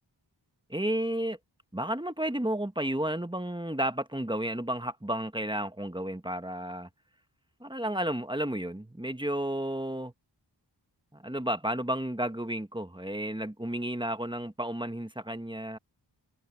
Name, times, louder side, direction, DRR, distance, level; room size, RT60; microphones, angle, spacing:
voice 1, 0.7-1.4 1.7-6.9 7.6-10.1 11.1-15.8, right 1 dB, 10° right, 1.3 m, -32 dB
wide cardioid pair, 40°, 43 cm